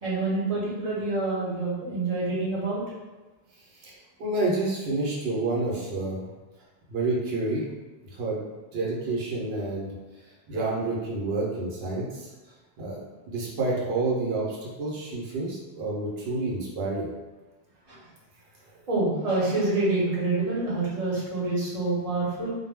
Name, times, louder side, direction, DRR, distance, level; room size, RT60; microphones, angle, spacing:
voice 1, 0.0-2.8 17.9-18.0 18.9-22.5, right 2 dB, 40° right, -7 dB, 0.8 m, -27 dB
voice 2, 4.2-6.2 6.9-7.7 8.2-8.4 8.7-9.9 10.5-12.3 12.8-17.1, right 2 dB, 70° right, -4 dB, 0.9 m, -29 dB
2.2 x 2.1 x 3.4 m, 1.2 s
omnidirectional pair, 1.1 m